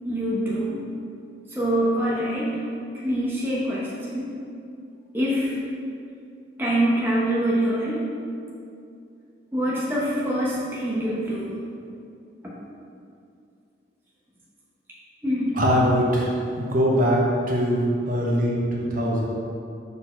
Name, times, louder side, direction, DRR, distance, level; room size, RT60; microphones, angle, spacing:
voice 1, 0.0-0.9 1.5-2.6 3.0-4.4 5.1-5.6 6.6-8.0 9.5-11.5 15.2-15.6, right 1 dB, 10° right, -7 dB, 0.8 m, -25 dB
voice 2, 15.5-16.3 16.6-17.2 17.5-19.3, equal, 45° right, -3 dB, 0.9 m, -22 dB
4.7 x 4.0 x 5.4 m, 2.5 s
head